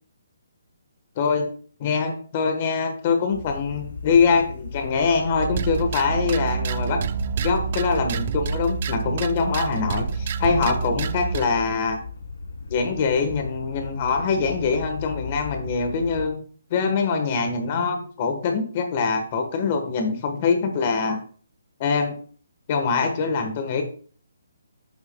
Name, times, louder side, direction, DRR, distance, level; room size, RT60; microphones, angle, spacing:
voice 1, 1.2-1.5 1.8-7.0 7.4-12.0 12.7-16.4 16.7-21.2 21.8-22.1 22.7-23.8, left 5 dB, 20° left, 5 dB, 1.2 m, -23 dB
sound 1, 3.3-16.3, left 5 dB, 75° left, 2.7 m, -36 dB
sound 2, 5.4-11.5, right 7 dB, 30° right, 0.3 m, -28 dB
10.5 x 9.2 x 2.2 m, 0.43 s
hypercardioid pair, 180°, 0 cm